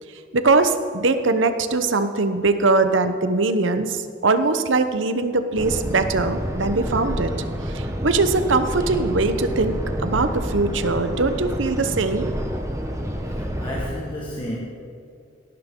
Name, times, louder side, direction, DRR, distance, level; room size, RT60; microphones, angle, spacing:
voice 1, 0.3-7.3 7.7-9.8 10.0-12.3, right 3 dB, 80° right, 10 dB, 0.9 m, -21 dB
sound 1, 5.6-13.9, equal, 15° right, 1.2 m, -28 dB
voice 2, 13.2-14.6, equal, 25° left, -4 dB, 1.6 m, -32 dB
17.5 x 11.5 x 3.8 m, 2.4 s
head